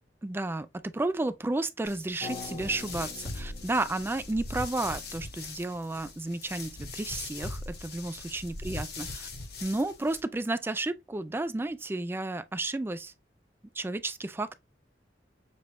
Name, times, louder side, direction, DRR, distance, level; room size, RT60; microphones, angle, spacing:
voice 1, 0.2-9.3 9.6-13.1 13.7-14.6, right 2 dB, 15° right, 0.3 m, -32 dB
sound 1, 1.8-10.2, left 3 dB, 65° left, 1.5 m, -40 dB
sound 2, 2.2-6.3, left 4 dB, 35° left, 1.0 m, -46 dB
6.8 x 2.3 x 3.0 m
head